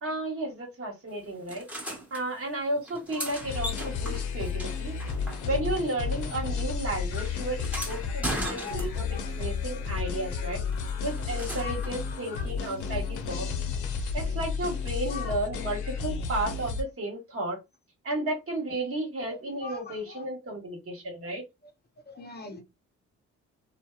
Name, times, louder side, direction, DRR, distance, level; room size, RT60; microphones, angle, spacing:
voice 1, 0.0-1.7 2.1-5.0 5.4-10.6 11.0-13.5 14.1-17.6 18.0-21.4, right 1 dB, 50° right, 1.2 m, -33 dB
sound 1, 1.5-2.2 2.8-5.8 6.1-9.2 10.7-12.0 14.0-14.1, right 1 dB, 5° right, 1.1 m, -38 dB
sound 2, 3.4-16.8, left 5 dB, 75° left, 0.6 m, -32 dB
voice 2, 8.4-9.3 10.4-10.9 11.6-11.8 12.1-12.5 15.0-15.4 19.3-20.2 22.1-22.6, left 4 dB, 35° left, 0.6 m, -42 dB
2.7 x 2.0 x 2.3 m
cardioid pair, 90°, 30 cm